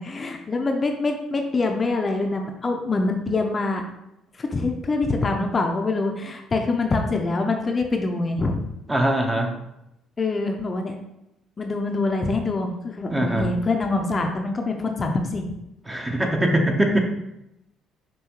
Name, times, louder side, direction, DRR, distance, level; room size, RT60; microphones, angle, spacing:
voice 1, 0.0-3.8 4.4-8.6 10.2-10.9 11.6-15.5, left 3 dB, 35° left, 3 dB, 0.5 m, -25 dB
voice 2, 8.9-9.5 13.1-13.5 15.9-17.0, right 1 dB, 15° right, 2 dB, 0.8 m, -22 dB
5.5 x 2.7 x 3.0 m, 0.85 s
hypercardioid pair, 55°, 0 cm